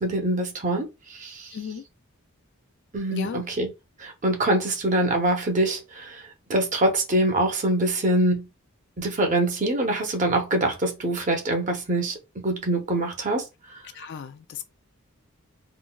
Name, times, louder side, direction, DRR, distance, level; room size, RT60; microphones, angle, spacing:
voice 1, 0.0-1.5 2.9-3.7 4.0-6.2 6.5-8.5 9.0-12.2 12.4-13.5, right 1 dB, 35° right, 0.7 m, -24 dB
voice 2, 1.5-1.8 3.1-3.5 13.9-14.7, left 6 dB, 55° left, 0.3 m, -35 dB
3.8 x 2.0 x 2.2 m
head